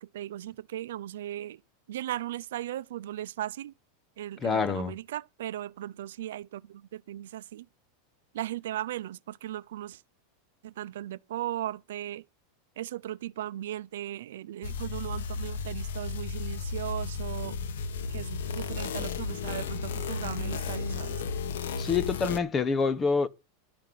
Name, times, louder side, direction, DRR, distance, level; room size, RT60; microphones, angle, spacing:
voice 1, 0.0-1.6 1.9-3.7 4.2-7.7 8.3-10.0 10.6-12.2 12.8-17.6 18.1-21.2, right 13 dB, 80° right, 0.6 m, -37 dB
voice 2, 4.4-5.0 21.8-23.3, left 5 dB, 20° left, 0.8 m, -26 dB
sound 1, 14.6-22.4, left 5 dB, 85° left, 1.3 m, -34 dB
12.0 x 5.6 x 9.2 m
supercardioid pair, 150°, 0 cm